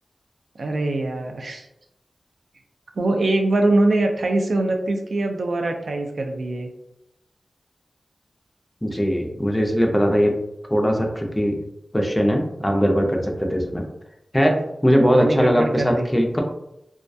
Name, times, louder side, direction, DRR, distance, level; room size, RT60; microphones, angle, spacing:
voice 1, 0.6-1.7 3.0-6.7 15.0-16.1, right 2 dB, 80° right, 4 dB, 0.4 m, -23 dB
voice 2, 8.8-10.4 10.7-11.6 11.9-13.8 14.3-16.4, equal, 10° left, 1 dB, 0.4 m, -20 dB
2.3 x 2.2 x 2.6 m, 0.85 s
wide cardioid pair, 75°, 0 cm